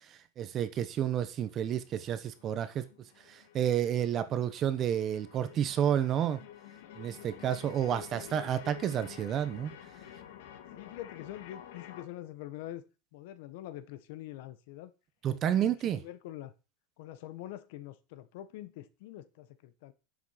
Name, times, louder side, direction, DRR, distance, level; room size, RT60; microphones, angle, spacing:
voice 1, 0.1-2.9 3.3-6.4 7.0-9.7 15.2-16.0, right 10 dB, 25° right, 1.0 m, -30 dB
sound 1, 0.7-12.0, left 10 dB, 85° left, 1.9 m, -50 dB
voice 2, 10.7-12.8 13.1-14.9 15.3-16.5 17.0-19.9, left 13 dB, 60° left, 1.3 m, -45 dB
9.9 x 7.4 x 5.8 m
supercardioid pair, 170°, 0 cm